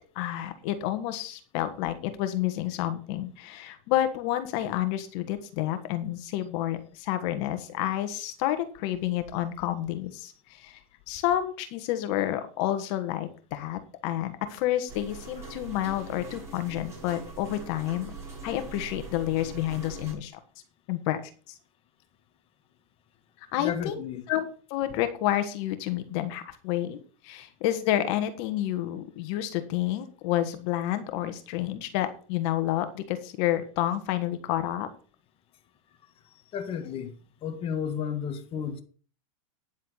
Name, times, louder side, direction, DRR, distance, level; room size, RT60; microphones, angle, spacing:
voice 1, 0.1-10.8 11.1-18.1 18.4-20.4 20.9-21.2 21.5-21.6 23.5-24.0 24.3-27.0 27.2-34.9, left 13 dB, 50° left, 1.5 m, -29 dB
sound 1, 14.9-20.1, right 3 dB, 15° right, 6.3 m, -42 dB
voice 2, 23.6-24.2 36.5-37.1 37.4-38.8, left 7 dB, 30° left, 1.5 m, -32 dB
10.0 x 7.4 x 5.7 m
hypercardioid pair, 130°, 18 cm